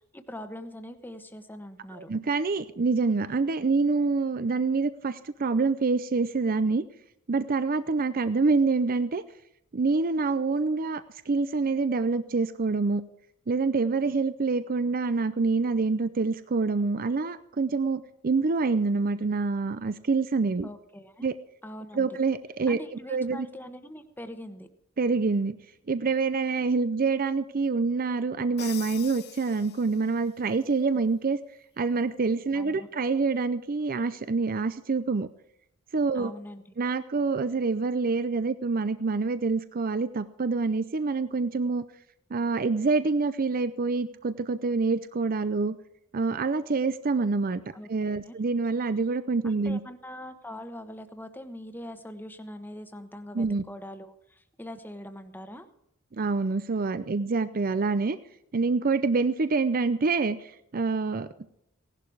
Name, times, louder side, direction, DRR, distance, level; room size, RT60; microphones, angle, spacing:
voice 1, 0.1-2.1 20.6-21.3 21.6-22.2 22.7-24.7 32.5-32.9 36.1-36.6 47.7-47.9 48.2-48.4 49.4-55.7, left 1 dB, 10° left, 8 dB, 1.1 m, -42 dB
voice 2, 2.0-6.8 7.3-9.2 9.7-13.0 13.5-20.7 21.2-21.3 21.9-22.8 23.1-23.5 25.0-25.6 25.9-31.4 31.8-35.3 35.9-36.3 36.8-41.8 42.3-45.8 46.1-47.6 47.9-49.8 53.3-53.6 56.1-58.2 58.5-61.5, right 4 dB, 40° right, 13 dB, 0.5 m, -26 dB
Crash cymbal, 28.6-30.2, left 12 dB, 50° left, 0.7 m, -43 dB
17.5 x 11.5 x 4.8 m, 0.78 s
head